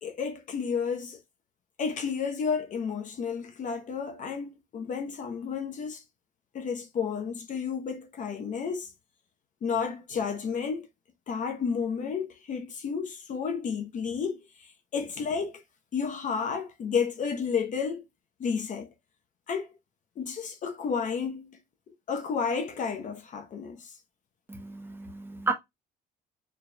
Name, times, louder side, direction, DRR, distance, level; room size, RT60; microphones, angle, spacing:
voice 1, 0.0-1.2 1.8-6.0 6.5-8.9 9.6-10.9 11.3-15.6 15.9-18.0 18.4-18.9 19.5-19.7 20.2-21.6 22.1-24.0, left 6 dB, 50° left, 0.9 m, -31 dB
voice 2, 24.5-25.5, right 4 dB, 10° right, 1.2 m, -32 dB
4.4 x 3.4 x 2.2 m
cardioid pair, 110°, 17 cm